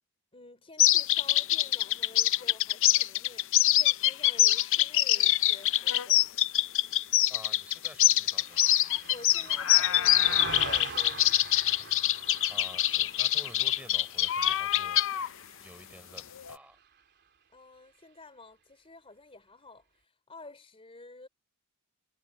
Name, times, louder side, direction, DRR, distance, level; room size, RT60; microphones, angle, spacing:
voice 1, 0.3-6.3 9.1-11.3 17.5-21.3, left 2 dB, 25° left, 3.3 m, -50 dB
sound 1, 0.8-15.3 16.2-16.6, left 13 dB, 60° left, 0.6 m, -24 dB
Car passing by, 6.8-16.4 16.8-17.0, right 5 dB, 50° right, 3.5 m, -44 dB
voice 2, 6.9-8.6 12.5-15.0 15.6-16.8, right 1 dB, 5° right, 4.5 m, -51 dB
head